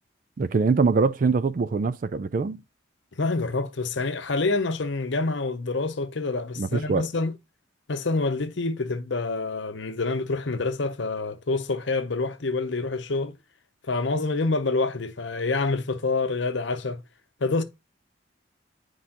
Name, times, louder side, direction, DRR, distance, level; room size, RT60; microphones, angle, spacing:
voice 1, 0.4-2.6 6.6-7.1, right 4 dB, 45° right, 0.4 m, -23 dB
voice 2, 3.1-7.3 7.9-13.4 13.9-17.0 17.4-17.6, left 3 dB, 65° left, 0.8 m, -27 dB
9.9 x 4.7 x 2.9 m
head